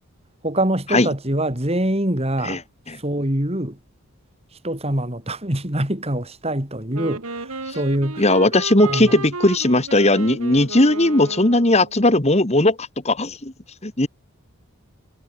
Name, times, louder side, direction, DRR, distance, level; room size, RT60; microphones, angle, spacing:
voice 1, 0.4-2.6 3.0-3.8 4.6-8.2 8.8-9.1, right 1 dB, 25° right, 3.4 m, -24 dB
Wind instrument woodwind instrument, 6.9-11.9, right 3 dB, 80° right, 2.8 m, -32 dB
voice 2, 8.2-13.5 13.8-14.1, left 2 dB, 30° left, 1.8 m, -18 dB
head